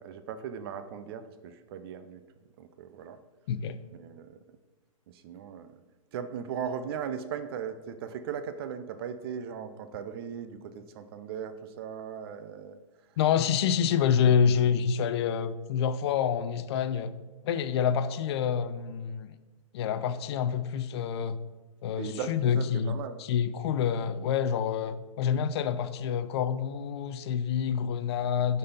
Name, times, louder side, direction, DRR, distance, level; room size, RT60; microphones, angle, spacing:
voice 1, 0.0-2.2 2.6-3.2 3.9-4.4 5.1-5.7 6.1-12.8 22.0-23.2, right 7 dB, 45° right, 0.5 m, -38 dB
voice 2, 3.5-3.8 13.2-17.1 17.4-19.3 19.7-21.4 21.8-28.6, left 7 dB, 50° left, 0.5 m, -27 dB
5.2 x 4.1 x 5.4 m
hypercardioid pair, 125°, 17 cm